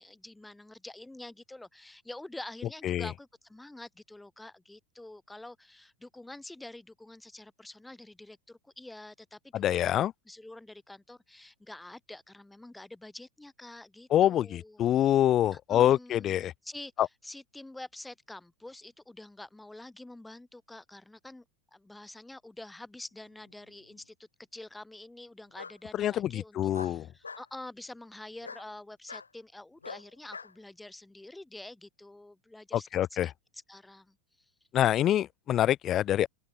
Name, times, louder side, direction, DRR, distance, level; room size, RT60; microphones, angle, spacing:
voice 1, 0.0-14.8 15.5-16.4 16.6-21.5 21.7-34.2, left 2 dB, 5° left, 1.9 m, -47 dB
voice 2, 9.5-10.1 14.1-16.5 17.0-17.1 26.0-27.0 32.7-33.3 34.7-36.3, left 12 dB, 30° left, 0.4 m, -26 dB
Bark, 23.4-24.0 25.5-25.8 26.7-27.5 28.4-28.7 29.1-29.3 29.8-30.5, left 4 dB, 75° left, 2.9 m, -43 dB
figure-of-eight pair, 90°, 0 cm